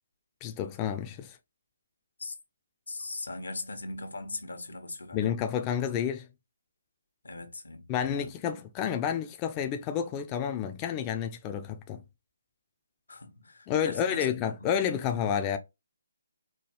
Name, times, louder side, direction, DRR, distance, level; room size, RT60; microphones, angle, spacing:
voice 1, 0.4-1.4 5.1-6.3 7.9-12.0 13.7-15.6, left 8 dB, 20° left, 0.3 m, -30 dB
voice 2, 2.9-5.3 7.2-8.3 13.1-14.7, left 2 dB, 90° left, 1.1 m, -40 dB
4.6 x 2.3 x 2.9 m
hypercardioid pair, 155°, 0 cm